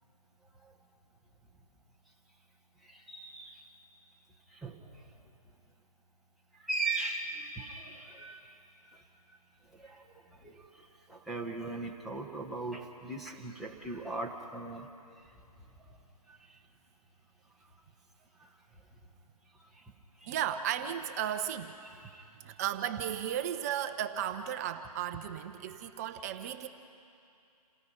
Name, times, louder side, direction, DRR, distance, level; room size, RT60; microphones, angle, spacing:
voice 1, 2.8-3.6 4.5-5.1 6.6-8.5 8.9-9.0 9.7-14.9 15.9-16.0 16.3-16.4 18.4-18.5 19.7-19.8 20.2-20.3 21.9-22.2 25.6-25.7 26.2-26.3, right 3 dB, ahead, -3 dB, 1.4 m, -39 dB
voice 2, 20.3-21.8 22.4-26.7, right 10 dB, 25° right, 8 dB, 0.8 m, -35 dB
28.5 x 17.5 x 5.7 m, 2.6 s
figure-of-eight pair, 145°, 20 cm